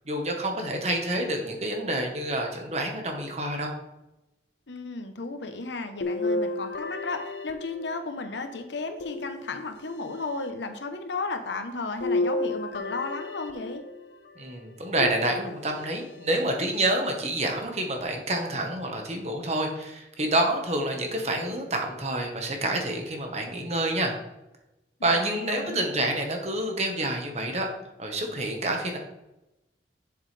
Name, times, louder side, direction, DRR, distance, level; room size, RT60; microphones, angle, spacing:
voice 1, 0.0-3.7 14.4-24.1 25.0-27.7 28.0-29.0, right 1 dB, 40° right, 3 dB, 1.3 m, -28 dB
voice 2, 4.7-13.8 25.0-25.9, left 3 dB, 90° left, 7 dB, 0.9 m, -34 dB
sound 1, 6.0-8.3 9.0-10.0 12.0-14.1 15.0-15.9 16.5-16.6 18.0-18.1, left 2 dB, 70° left, 0.6 m, -31 dB
7.6 x 7.2 x 3.3 m, 0.94 s
head